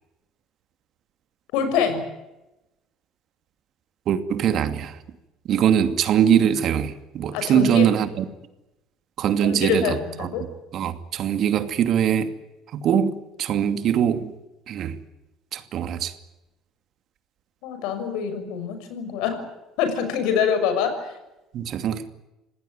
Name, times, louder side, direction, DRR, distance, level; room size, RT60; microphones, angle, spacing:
voice 1, 1.5-2.0 7.3-7.9 9.4-10.4 17.6-19.5 19.8-21.1, left 7 dB, 70° left, 6.3 m, -25 dB
voice 2, 4.1-5.0 5.5-8.3 9.2-10.3 10.7-12.3 12.7-14.3 14.7-15.0 15.5-16.1 21.5-22.0, right 9 dB, 55° right, 2.5 m, -22 dB
27.0 x 18.5 x 9.3 m
hypercardioid pair, 60°, 0 cm